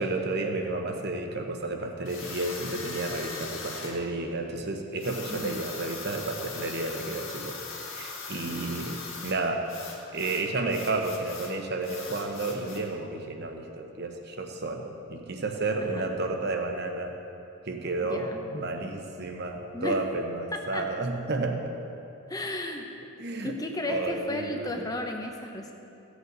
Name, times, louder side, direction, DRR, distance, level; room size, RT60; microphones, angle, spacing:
voice 1, 0.0-7.5 7.8-9.7 10.1-17.2 17.6-21.7 23.2-23.5 23.9-24.9, right 2 dB, 50° right, 3 dB, 1.0 m, -31 dB
sound 1, 2.0-4.0 5.0-9.4 9.6-11.5 11.8-12.9, left 4 dB, 55° left, 1.8 m, -40 dB
voice 2, 5.3-5.6 15.8-16.1 18.0-18.4 19.7-20.0 20.5-20.8 22.3-22.9 23.4-25.7, left 1 dB, 15° left, 3 dB, 0.8 m, -34 dB
15.5 x 8.1 x 4.0 m, 2.8 s
head